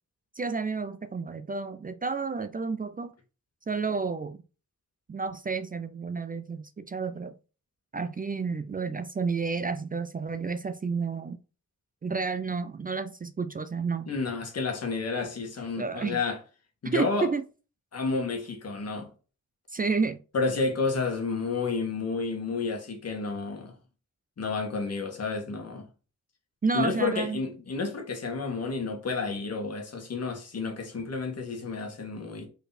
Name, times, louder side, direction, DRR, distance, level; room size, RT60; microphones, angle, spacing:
voice 1, 0.3-3.1 3.7-4.4 5.1-7.3 7.9-11.4 12.0-14.1 15.8-16.2 16.8-17.4 19.7-20.2 26.6-27.4, right 4 dB, 30° right, 0.5 m, -30 dB
voice 2, 14.1-16.4 16.8-17.3 17.9-19.1 20.3-23.7 24.4-25.9 26.7-32.5, left 4 dB, 55° left, 2.0 m, -30 dB
5.4 x 4.3 x 4.1 m
wide cardioid pair, 135°, 31 cm